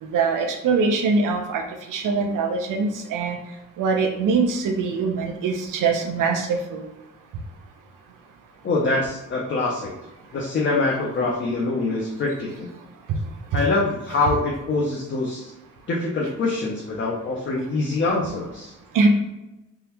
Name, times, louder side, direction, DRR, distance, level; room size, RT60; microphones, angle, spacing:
voice 1, 0.0-1.6 1.9-3.4 3.8-6.8 13.1-13.2 13.5-13.6 18.9-19.1, right 4 dB, 90° right, 3 dB, 0.5 m, -23 dB
voice 2, 8.6-9.9 10.3-12.7 13.5-15.5 15.9-18.7, left 3 dB, 40° left, -2 dB, 0.5 m, -24 dB
3.6 x 2.1 x 2.8 m, 0.96 s
wide cardioid pair, 155°, 31 cm